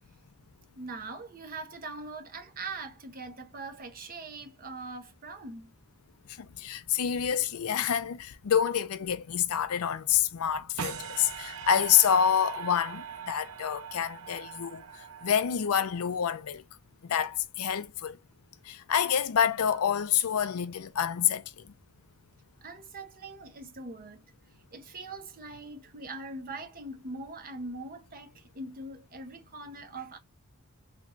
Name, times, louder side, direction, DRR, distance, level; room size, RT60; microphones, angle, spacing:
voice 1, 0.8-5.7 22.6-24.2 24.7-30.2, right 3 dB, 40° right, 0.8 m, -42 dB
voice 2, 6.6-14.8 15.2-16.6 17.0-18.2 18.7-21.4, left 8 dB, 70° left, 0.5 m, -27 dB
sound 1, 10.8-16.0, right 7 dB, 70° right, 0.7 m, -41 dB
3.4 x 3.0 x 2.5 m
head